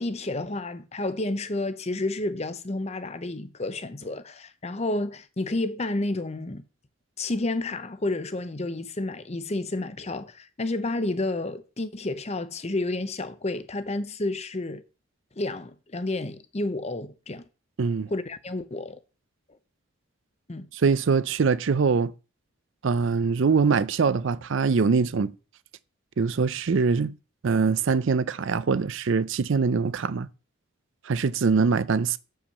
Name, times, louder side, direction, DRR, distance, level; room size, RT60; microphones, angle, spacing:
voice 1, 0.0-6.6 7.2-14.8 15.4-17.4 18.1-19.0 20.5-20.7, left 2 dB, 30° left, 0.7 m, -30 dB
voice 2, 17.8-18.1 20.7-22.1 22.8-25.3 26.2-27.1 27.4-30.3 31.0-32.2, right 5 dB, 60° right, 0.4 m, -23 dB
7.1 x 5.6 x 6.5 m
head